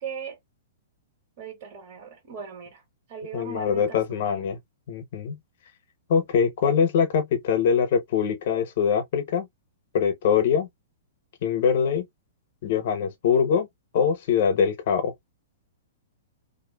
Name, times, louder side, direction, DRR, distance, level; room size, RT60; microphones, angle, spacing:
voice 1, 0.0-0.4 1.4-2.8 3.1-4.4, right 6 dB, 50° right, 1.4 m, -39 dB
voice 2, 3.3-4.6 4.9-5.4 6.1-9.5 9.9-10.7 11.4-12.0 12.6-13.7 13.9-15.1, left 7 dB, 60° left, 0.7 m, -23 dB
2.5 x 2.3 x 2.2 m
hypercardioid pair, 125°, 0 cm